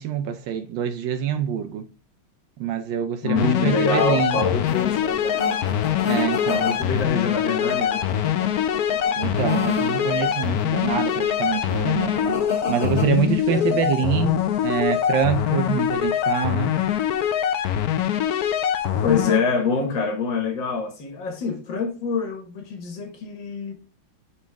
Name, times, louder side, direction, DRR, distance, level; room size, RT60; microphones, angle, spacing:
voice 1, 0.0-1.9 2.6-4.4 6.0-6.7 9.2-12.4 12.7-16.8, right 8 dB, 75° right, 1.2 m, -25 dB
voice 2, 3.2-5.4 6.5-8.0 13.5-14.4 19.0-23.7, left 5 dB, 65° left, 1.9 m, -26 dB
sound 1, 3.4-19.4, left 10 dB, 85° left, 0.8 m, -23 dB
sound 2, 4.6-13.1, left 4 dB, 45° left, 1.0 m, -33 dB
7.0 x 4.1 x 3.4 m
omnidirectional pair, 2.3 m